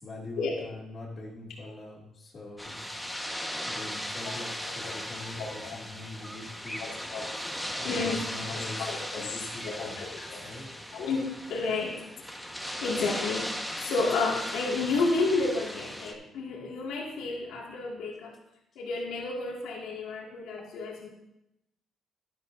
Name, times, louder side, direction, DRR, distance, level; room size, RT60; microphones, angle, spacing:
voice 1, 0.0-2.8 3.6-6.9 7.7-10.0 10.4-10.7, left 2 dB, 50° left, -7 dB, 2.3 m, -43 dB
sound 1, 2.6-16.1, equal, ahead, 1.2 m, -37 dB
voice 2, 4.6-4.9 5.4-5.8 6.8-7.3 7.8-8.2 8.5-10.4 10.9-11.9 12.8-13.5 13.8-18.3 18.8-21.1, left 3 dB, 85° left, -2 dB, 2.0 m, -31 dB
11.0 x 11.0 x 2.6 m, 0.84 s
cardioid pair, 90°, 0 cm